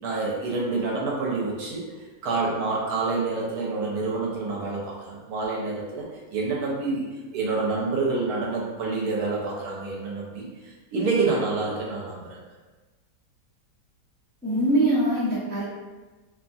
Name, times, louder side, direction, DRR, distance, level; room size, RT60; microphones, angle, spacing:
voice 1, 0.0-1.8 2.2-6.0 6.3-12.4, right 3 dB, 70° right, -4 dB, 1.1 m, -27 dB
voice 2, 14.4-15.6, right 1 dB, 15° left, -11 dB, 0.4 m, -22 dB
2.8 x 2.3 x 2.5 m, 1.2 s
omnidirectional pair, 1.8 m